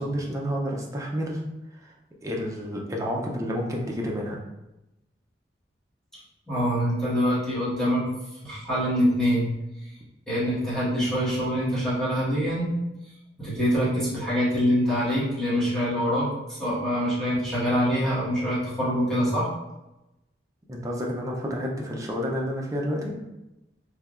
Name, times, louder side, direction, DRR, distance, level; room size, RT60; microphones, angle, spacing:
voice 1, 0.0-1.4 1.7-1.9 2.2-4.4 20.7-23.2, equal, 20° right, -1 dB, 0.5 m, -30 dB
voice 2, 6.5-8.0 8.4-9.5 10.3-12.7 13.4-19.5, equal, 5° left, -12 dB, 1.2 m, -25 dB
3.4 x 2.7 x 2.4 m, 0.95 s
head